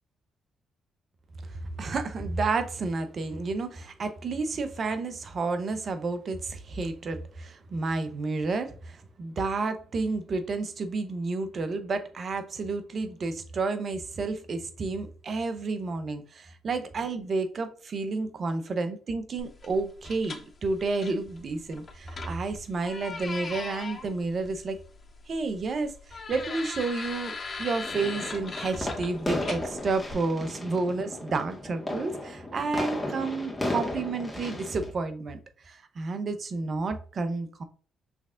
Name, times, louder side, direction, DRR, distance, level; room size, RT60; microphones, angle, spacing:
voice 1, 1.4-24.8 25.3-35.4 35.6-37.6, right 3 dB, 50° right, 0.8 m, -31 dB
sound 1, 19.4-30.1, left 4 dB, 45° left, 0.8 m, -40 dB
sound 2, 27.8-34.9, left 1 dB, 15° left, 1.5 m, -35 dB
6.0 x 3.3 x 2.5 m
supercardioid pair, 55°, 0 cm